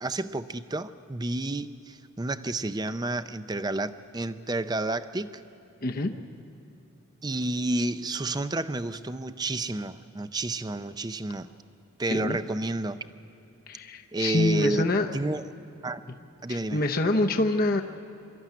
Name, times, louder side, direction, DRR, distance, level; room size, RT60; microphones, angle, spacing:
voice 1, 0.0-5.4 7.2-11.5 12.0-13.0 14.1-15.4 15.8-16.0 16.4-16.8, right 2 dB, 20° right, 12 dB, 0.5 m, -30 dB
voice 2, 5.8-6.1 12.1-12.4 13.7-15.1 16.5-17.8, left 2 dB, 45° left, 4 dB, 0.8 m, -26 dB
24.5 x 13.0 x 9.1 m, 3.0 s
head